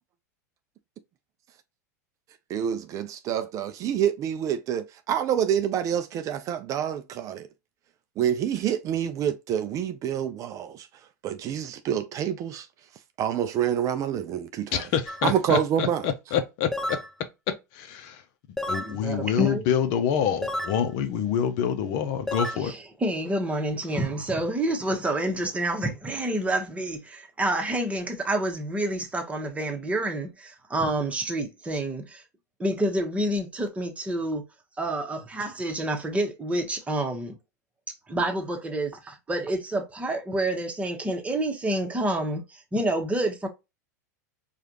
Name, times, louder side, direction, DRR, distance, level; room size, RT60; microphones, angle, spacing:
voice 1, 2.5-7.5 8.2-10.9 11.2-12.7 13.2-14.8 15.2-16.0, right 9 dB, 35° right, 0.4 m, -27 dB
voice 2, 14.7-16.7 17.7-18.2 18.7-22.7, left 8 dB, 50° left, 0.7 m, -26 dB
sound 1, 15.1-15.2 16.7-17.1 18.6-18.9 20.4-20.8 22.3-22.6, left 1 dB, 5° left, 0.7 m, -30 dB
voice 3, 18.8-19.6 22.5-32.2 32.6-34.4 34.8-37.4 38.1-43.5, right 1 dB, 15° right, 1.2 m, -28 dB
4.8 x 2.4 x 2.9 m
figure-of-eight pair, 85°, 9 cm